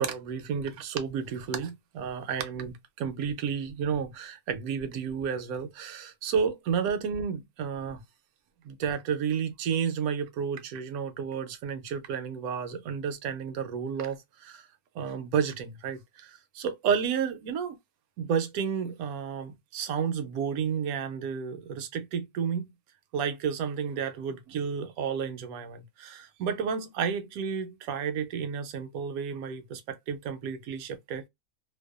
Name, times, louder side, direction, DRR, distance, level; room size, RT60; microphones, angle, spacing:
voice 1, 0.0-8.0 8.6-14.7 14.9-17.8 18.2-22.7 23.1-31.3, right 7 dB, 75° right, 1.0 m, -31 dB
2.6 x 2.2 x 2.2 m
omnidirectional pair, 1.6 m